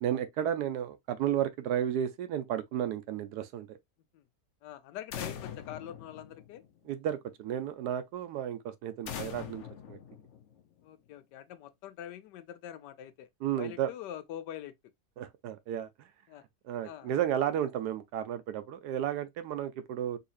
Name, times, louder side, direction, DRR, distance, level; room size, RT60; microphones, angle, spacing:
voice 1, 0.0-3.8 6.8-9.6 9.9-10.0 13.4-13.9 15.2-16.1 16.6-20.2, right 10 dB, 75° right, 1.1 m, -33 dB
voice 2, 4.6-6.6 10.8-13.3 13.6-14.7 16.3-16.4 16.8-17.1, left 11 dB, 80° left, 1.2 m, -44 dB
sound 1, 5.1-6.9 9.1-10.8, left 8 dB, 60° left, 0.8 m, -42 dB
3.9 x 2.8 x 2.5 m
omnidirectional pair, 1.9 m